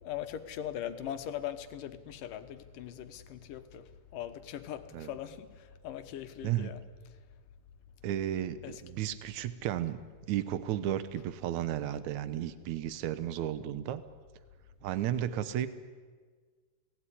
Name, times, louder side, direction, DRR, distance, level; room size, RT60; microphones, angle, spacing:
voice 1, 0.0-6.8 8.6-8.8, left 10 dB, 65° left, 10 dB, 2.4 m, -40 dB
voice 2, 6.4-6.8 8.0-10.0 10.3-14.0 14.8-15.7, right 11 dB, 85° right, 13 dB, 1.6 m, -33 dB
29.0 x 18.5 x 10.0 m, 1.5 s
omnidirectional pair, 4.8 m